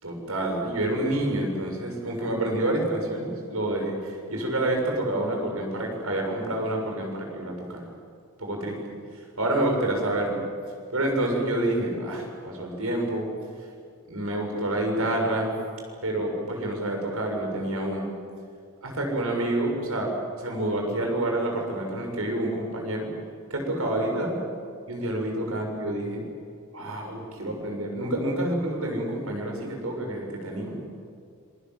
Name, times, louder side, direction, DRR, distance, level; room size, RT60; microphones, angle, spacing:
voice 1, 0.0-7.8 8.4-8.8 9.4-10.4 10.9-13.3 14.1-15.6 16.0-18.1 18.8-23.1 23.5-24.4 24.9-26.2 26.7-30.8, right 1 dB, 75° right, 1 dB, 6.9 m, -28 dB
26.5 x 24.0 x 7.8 m, 2.3 s
head